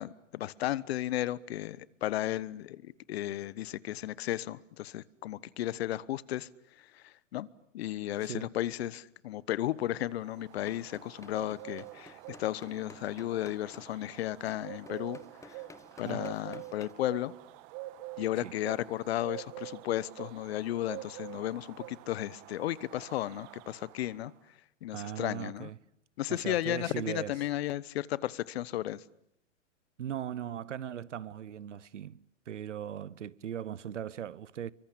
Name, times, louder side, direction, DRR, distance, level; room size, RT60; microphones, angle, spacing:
voice 1, 0.0-6.5 6.9-7.5 7.7-15.2 15.4-15.6 16.0-17.3 18.2-24.3 24.8-25.7 26.2-29.0, left 13 dB, 55° left, 1.2 m, -34 dB
sound 1, 9.7-24.3, right 17 dB, 40° right, 1.5 m, -47 dB
sound 2, 10.5-16.9, left 4 dB, 10° left, 1.3 m, -55 dB
voice 2, 15.9-16.3 18.4-18.5 24.9-25.8 26.3-27.4 30.0-34.7, right 9 dB, 75° right, 1.0 m, -39 dB
28.0 x 24.0 x 8.7 m
hypercardioid pair, 110°, 37 cm